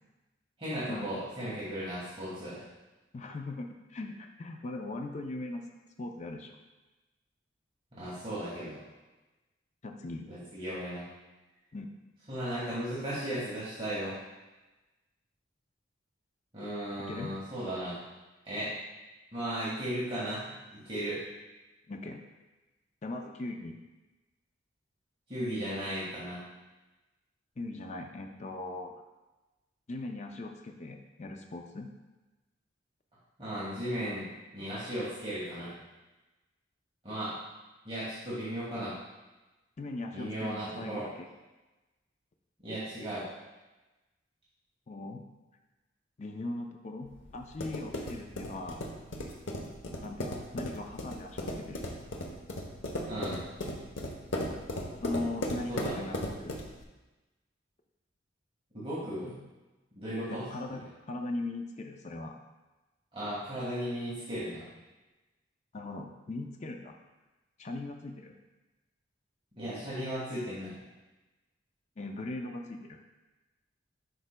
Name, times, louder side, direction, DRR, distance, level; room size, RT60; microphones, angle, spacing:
voice 1, 0.6-2.6 7.9-8.8 10.2-11.1 12.3-14.2 16.5-18.0 18.5-18.7 19.3-20.4 20.7-21.2 25.3-26.4 33.4-34.3 34.5-35.7 37.0-37.3 37.9-38.9 40.1-41.1 42.6-43.3 53.1-53.4 55.7-56.1 58.7-59.4 60.0-60.5 63.1-64.7 69.6-70.7, right 1 dB, 30° right, -10 dB, 1.6 m, -36 dB
voice 2, 3.1-5.6 6.0-6.6 9.8-10.3 11.7-12.0 17.1-17.3 21.9-22.2 23.0-23.8 27.6-28.9 29.9-31.9 39.8-41.3 44.9-45.3 46.2-48.9 50.0-51.8 55.0-56.6 60.3-62.4 65.7-67.0 67.6-68.3 72.0-73.0, left 2 dB, 40° left, 3 dB, 0.4 m, -39 dB
sound 1, 47.1-56.8, left 1 dB, 85° left, 0.9 m, -37 dB
10.5 x 4.6 x 2.2 m, 1.1 s
head